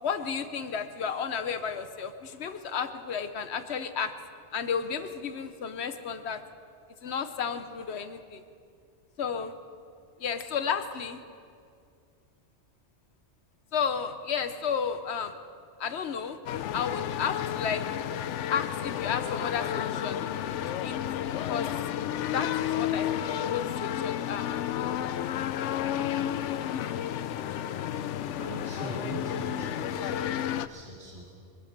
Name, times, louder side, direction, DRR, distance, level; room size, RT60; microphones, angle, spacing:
voice 1, 0.0-4.1 4.5-6.4 7.0-8.4 9.2-9.5 10.2-11.2 13.7-15.4 15.8-16.4 16.7-17.8 18.5-20.2 20.8-21.0 21.5-21.7 22.3-24.5 24.7-24.9, left 6 dB, 65° left, 10 dB, 1.1 m, -32 dB
sound 1, 16.5-30.7, left 10 dB, 85° left, 0.9 m, -31 dB
voice 2, 28.3-31.3, right 1 dB, 65° right, -5 dB, 3.1 m, -41 dB
24.0 x 9.1 x 6.7 m, 2.3 s
omnidirectional pair, 1.2 m